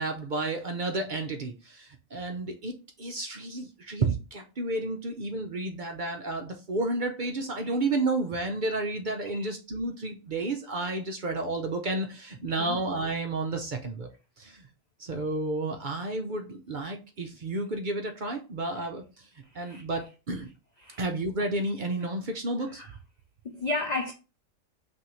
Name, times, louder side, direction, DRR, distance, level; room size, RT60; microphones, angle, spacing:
voice 1, 0.0-14.1 14.4-14.7 15.0-19.3 19.5-20.5 21.0-22.8, right 2 dB, 50° right, 0.6 m, -31 dB
voice 2, 19.5-19.8 20.8-21.0 22.7-22.9 23.4-24.1, left 2 dB, 90° left, 0.3 m, -33 dB
5.9 x 2.7 x 3.0 m
omnidirectional pair, 1.4 m